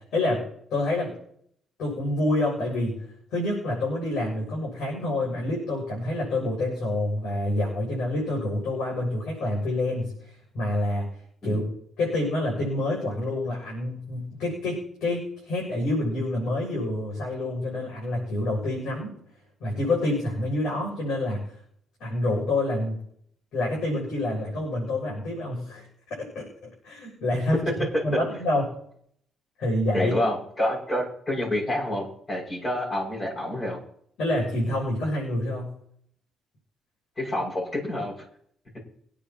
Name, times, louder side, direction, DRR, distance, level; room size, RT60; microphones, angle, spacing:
voice 1, 0.1-1.1 1.8-3.0 3.3-11.1 11.4-11.6 12.0-19.2 19.6-21.4 22.0-23.0 23.5-27.6 28.0-28.8 29.6-30.1 34.2-35.7, left 1 dB, 80° left, -3 dB, 7.4 m, -27 dB
voice 2, 29.9-33.8 37.2-38.1, left 1 dB, 35° left, -2 dB, 6.7 m, -28 dB
24.0 x 10.0 x 3.1 m, 0.67 s
cardioid pair, 90°, 0 cm